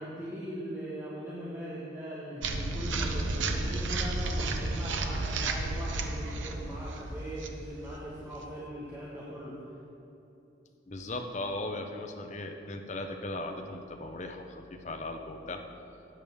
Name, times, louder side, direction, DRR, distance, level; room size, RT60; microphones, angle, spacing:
voice 1, 0.0-9.6, equal, 15° right, -9 dB, 1.4 m, -40 dB
sound 1, 2.4-8.6, right 2 dB, 90° right, 0.8 m, -32 dB
voice 2, 10.9-15.6, left 2 dB, 40° left, 4 dB, 0.8 m, -37 dB
13.0 x 9.0 x 3.6 m, 2.9 s
head